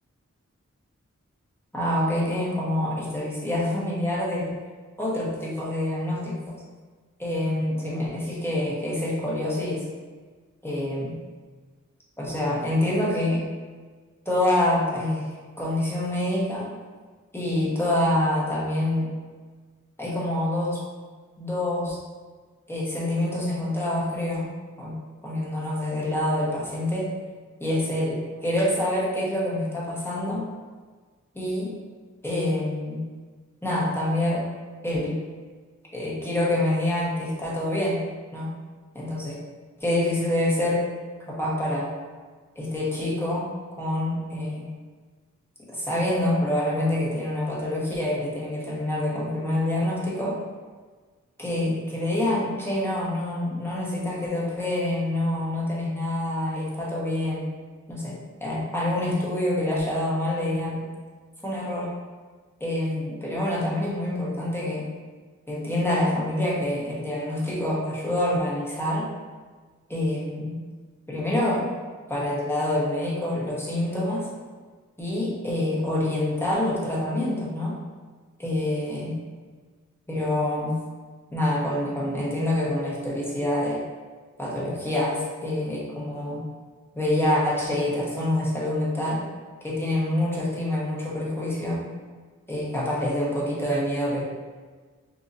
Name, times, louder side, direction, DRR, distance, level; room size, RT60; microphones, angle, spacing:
voice 1, 1.7-4.5 5.0-6.6 7.2-9.8 10.6-11.2 12.2-13.4 14.2-15.3 15.6-16.7 17.3-19.1 20.0-20.8 21.4-22.0 22.7-24.5 24.8-25.0 25.2-27.1 27.6-30.4 31.3-31.7 32.2-33.0 33.6-34.4 34.8-35.2 35.9-38.0 38.3-38.5 38.9-39.4 39.8-40.8 41.3-41.9 42.6-43.5 43.8-44.7 45.7-50.4 51.4-57.5 57.9-60.8 61.4-61.9 62.6-64.9 65.5-69.1 69.9-70.6 71.1-71.6 72.1-74.3 75.0-77.8 78.4-79.2 80.1-80.8 81.3-83.8 84.4-86.4 86.9-89.2 89.6-91.8 92.5-94.2, left 1 dB, 10° left, -6 dB, 1.1 m, -26 dB
4.0 x 2.8 x 2.5 m, 1.5 s
wide cardioid pair, 50°, 31 cm